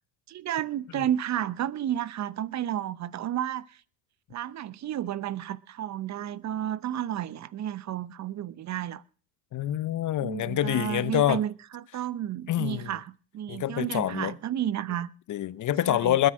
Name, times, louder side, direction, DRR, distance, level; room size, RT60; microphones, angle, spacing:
voice 1, 0.3-3.7 4.3-9.0 10.2-15.1 15.9-16.2, right 11 dB, 35° right, 0.9 m, -32 dB
voice 2, 9.5-11.4 12.5-12.9 13.5-14.3 15.3-16.3, left 12 dB, 35° left, 1.0 m, -26 dB
20.5 x 9.6 x 6.2 m
hypercardioid pair, 85°, 50 cm